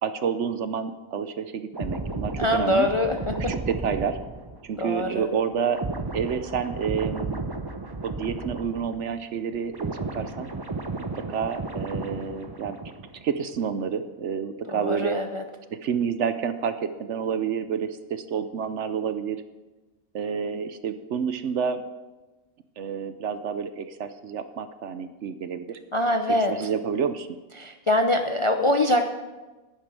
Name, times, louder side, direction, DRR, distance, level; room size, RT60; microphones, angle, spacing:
voice 1, 0.0-2.9 3.5-4.2 4.6-5.8 6.1-7.4 8.0-10.5 11.2-12.8 13.2-15.2 15.7-19.4 20.1-21.8 22.8-25.8 26.3-27.3, right 7 dB, 60° right, 10 dB, 0.9 m, -29 dB
sound 1, 1.7-9.2 9.5-13.2 13.5-13.8, right 3 dB, 25° right, 0.6 m, -34 dB
voice 2, 2.4-3.5 4.8-5.3 14.7-15.4 25.9-26.5 27.6-29.0, left 1 dB, 35° left, 5 dB, 0.5 m, -23 dB
10.5 x 10.5 x 6.2 m, 1.2 s
omnidirectional pair, 1.5 m